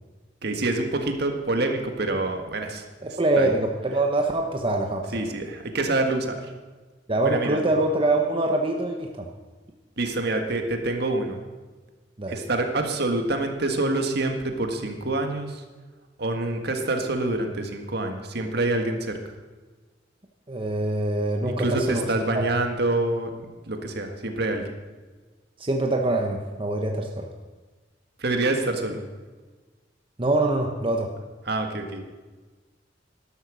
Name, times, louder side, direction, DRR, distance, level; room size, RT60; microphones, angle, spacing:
voice 1, 0.4-3.5 5.1-6.5 7.2-7.6 10.0-11.4 12.3-15.6 16.2-19.2 21.4-24.6 28.2-29.0 31.5-32.0, right 2 dB, 60° right, 4 dB, 1.8 m, -26 dB
voice 2, 3.0-5.2 7.1-9.3 12.2-12.4 20.5-22.0 22.3-22.5 25.6-27.3 30.2-31.1, right 2 dB, 30° right, 2 dB, 1.0 m, -24 dB
12.5 x 12.0 x 6.3 m, 1.3 s
head